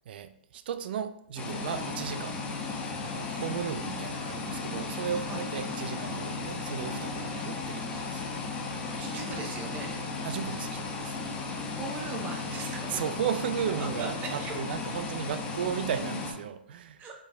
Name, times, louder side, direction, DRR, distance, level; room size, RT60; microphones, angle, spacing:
voice 1, 0.1-2.4 3.1-8.2 10.2-11.2 12.9-17.1, right 8 dB, 60° right, 12 dB, 0.3 m, -35 dB
sound 1, 1.4-16.3, left 4 dB, 20° left, 0.7 m, -35 dB
voice 2, 9.0-10.3 11.7-13.0 13.8-14.5 17.0-17.1, right 4 dB, 30° right, 2 dB, 0.9 m, -39 dB
5.1 x 3.3 x 2.2 m, 0.75 s
hypercardioid pair, 120°, 6 cm